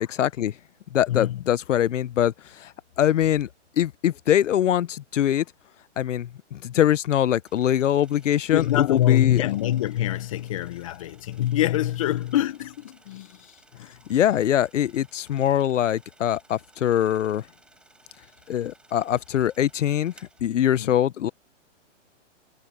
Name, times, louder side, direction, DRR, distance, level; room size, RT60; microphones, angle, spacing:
voice 1, 0.2-0.5 0.9-2.3 2.6-2.7 3.0-3.5 3.8-5.4 6.0-9.5 14.1-17.4 18.5-20.1 20.4-21.3, left 11 dB, 80° left, 0.8 m, -23 dB
voice 2, 1.1-1.4 8.5-13.3 13.8-13.9 20.8-20.9, left 13 dB, 30° left, 0.8 m, -25 dB
sound 1, 7.5-20.7, right 2 dB, 5° right, 6.7 m, -58 dB
hypercardioid pair, 170°, 36 cm